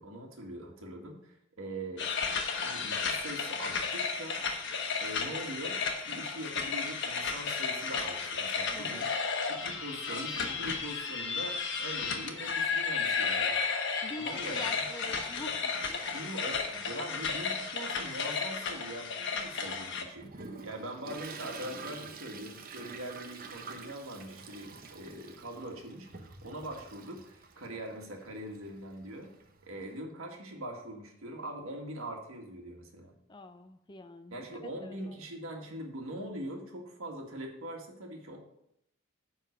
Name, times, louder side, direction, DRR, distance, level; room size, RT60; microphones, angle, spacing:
voice 1, 0.0-2.0 2.5-4.4 5.0-5.8 6.1-9.1 9.6-13.6 14.2-14.8 16.1-29.3 29.6-33.1 34.3-38.4, right 1 dB, 75° right, 2 dB, 1.8 m, -42 dB
sound 1, 2.0-20.0, left 5 dB, 55° left, 1.1 m, -33 dB
voice 2, 8.7-9.1 14.0-16.1 33.3-35.2, left 3 dB, 20° left, 9 dB, 0.5 m, -45 dB
Toilet flush, 19.7-30.0, right 4 dB, 45° right, 0.8 m, -48 dB
10.0 x 3.9 x 6.5 m, 0.76 s
head